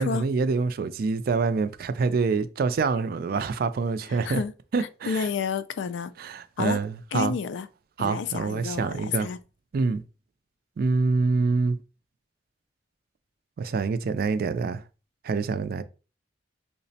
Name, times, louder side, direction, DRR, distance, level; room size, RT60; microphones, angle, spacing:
voice 1, 0.0-4.4 4.7-5.3 6.2-7.4 8.0-9.3 9.7-10.0 10.8-11.8 13.6-14.8 15.2-15.8, right 4 dB, 55° right, 0.3 m, -26 dB
voice 2, 4.1-4.5 4.8-6.1 6.6-6.8 7.1-7.7 8.0-9.4, left 6 dB, 85° left, 0.4 m, -30 dB
5.7 x 2.1 x 2.7 m
head